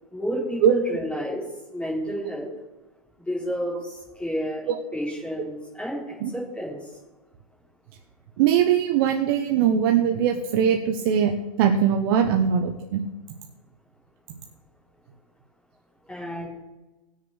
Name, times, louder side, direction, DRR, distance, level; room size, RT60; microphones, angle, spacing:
voice 1, 0.1-1.4 1.7-2.5 3.3-4.6 4.9-6.0 6.3-6.8 16.1-16.5, equal, 5° left, -7 dB, 5.0 m, -30 dB
voice 2, 8.4-11.3 11.6-13.0, right 8 dB, 40° right, 4 dB, 0.9 m, -21 dB
18.5 x 6.6 x 6.4 m, 1.1 s
hypercardioid pair, 165°, 20 cm